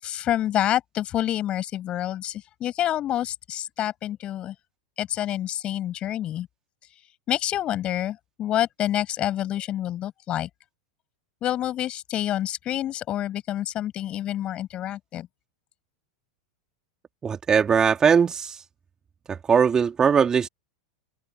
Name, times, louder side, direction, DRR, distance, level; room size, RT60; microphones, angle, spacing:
voice 1, 0.0-4.5 5.0-6.5 7.3-10.5 11.4-15.3, left 12 dB, 35° left, 7.9 m, -28 dB
voice 2, 17.2-18.6 19.3-20.5, right 6 dB, 20° right, 3.0 m, -20 dB
figure-of-eight pair, 90°, 3 cm